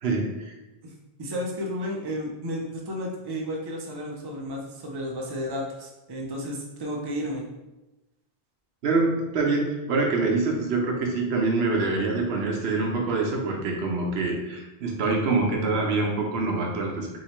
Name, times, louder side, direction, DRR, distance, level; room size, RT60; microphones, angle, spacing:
voice 1, 0.0-0.5 8.8-17.1, right 3 dB, 75° right, 0 dB, 0.9 m, -25 dB
voice 2, 1.2-7.4, equal, 35° right, -1 dB, 0.4 m, -32 dB
3.1 x 2.8 x 2.9 m, 1.0 s
omnidirectional pair, 1.1 m